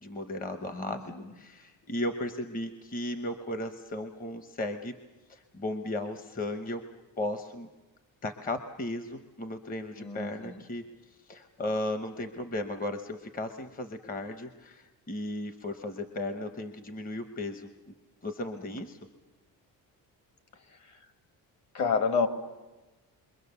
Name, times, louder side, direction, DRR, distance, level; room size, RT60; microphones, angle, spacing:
voice 1, 0.0-4.9 5.3-6.8 7.2-7.7 8.2-17.9 18.2-19.0, left 1 dB, 20° left, 7 dB, 0.9 m, -36 dB
voice 2, 0.7-1.3 10.0-10.6 18.6-18.7 20.9-21.0 21.7-22.3, left 5 dB, 45° left, 7 dB, 1.9 m, -30 dB
28.0 x 23.5 x 6.9 m, 1.2 s
cardioid pair, 155°, 38 cm